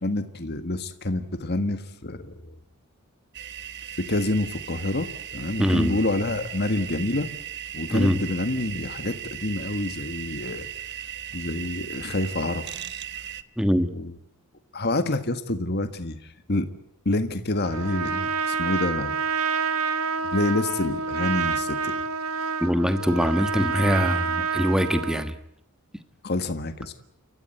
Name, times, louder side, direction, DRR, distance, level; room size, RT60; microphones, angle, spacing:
voice 1, 0.0-2.6 4.0-7.3 7.7-10.7 11.3-12.8 14.0-14.1 14.7-16.2 16.5-16.7 17.1-19.2 20.3-21.9 26.2-26.9, left 2 dB, 50° left, 9 dB, 1.6 m, -27 dB
sound 1, 3.3-13.4, right 10 dB, 50° right, 1.1 m, -37 dB
voice 2, 5.6-6.0 7.9-8.2 13.6-13.9 22.6-25.3, equal, 5° right, 9 dB, 1.4 m, -23 dB
Trumpet, 17.6-25.3, right 5 dB, 75° right, 1.5 m, -28 dB
30.0 x 14.5 x 9.3 m, 0.73 s
head